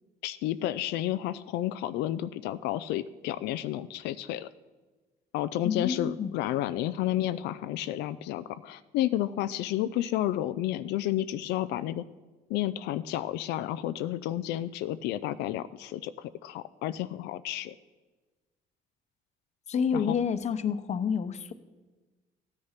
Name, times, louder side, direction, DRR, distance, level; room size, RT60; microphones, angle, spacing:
voice 1, 0.2-4.5 5.3-12.0 12.5-17.7 19.9-20.2, left 13 dB, 85° left, 12 dB, 0.4 m, -31 dB
voice 2, 5.6-6.3 19.7-21.5, left 6 dB, 40° left, 12 dB, 0.9 m, -28 dB
14.5 x 9.8 x 5.8 m, 1.2 s
cardioid pair, 110°, 17 cm